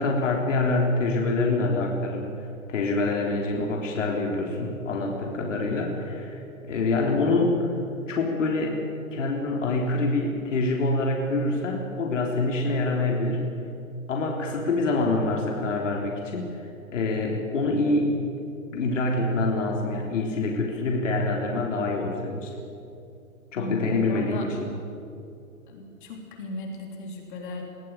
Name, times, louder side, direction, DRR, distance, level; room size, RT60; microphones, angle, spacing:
voice 1, 0.0-2.3 2.7-7.5 8.1-8.8 9.1-13.4 14.1-18.1 18.7-22.5 23.5-24.7, left 2 dB, 60° left, 0 dB, 3.7 m, -26 dB
voice 2, 23.5-24.5 25.7-27.6, left 2 dB, 35° left, 1 dB, 3.6 m, -35 dB
21.5 x 15.0 x 9.1 m, 2.6 s
hypercardioid pair, 160°, 42 cm